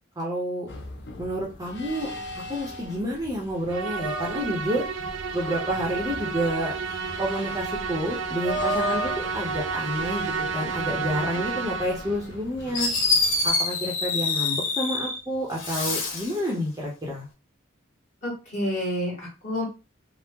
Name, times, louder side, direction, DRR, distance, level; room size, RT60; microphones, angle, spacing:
voice 1, 0.2-0.7 1.2-2.1 2.5-4.9 5.3-6.7 7.2-12.9 13.4-17.3, equal, 20° right, -3 dB, 0.7 m, -29 dB
sound 1, 0.7-13.5, equal, 60° left, 0.6 m, -37 dB
Musical instrument, 3.7-12.2, right 5 dB, 80° right, 0.4 m, -31 dB
Fireworks, 12.3-12.4 12.7-15.2 15.5-16.4, left 3 dB, 90° left, 0.9 m, -25 dB
voice 2, 18.2-19.6, left 1 dB, 35° left, -4 dB, 1.5 m, -29 dB
2.8 x 2.1 x 3.5 m, 0.30 s
head